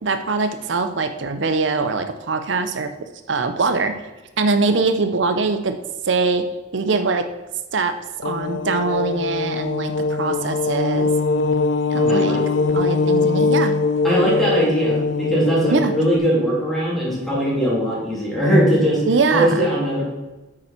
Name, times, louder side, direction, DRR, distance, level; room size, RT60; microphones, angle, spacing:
voice 1, 0.0-2.9 3.3-3.9 4.4-5.7 6.0-6.4 6.7-7.2 7.7-7.9 8.2-11.1 11.9-12.4 12.7-13.8 15.7-15.9 19.1-19.7, right 4 dB, 75° right, 9 dB, 0.6 m, -22 dB
sound 1, 8.2-16.2, left 4 dB, 80° left, 0.5 m, -21 dB
voice 2, 12.1-12.4 14.0-19.0 19.3-20.1, equal, ahead, -7 dB, 3.2 m, -20 dB
8.6 x 6.2 x 4.4 m, 1.1 s
head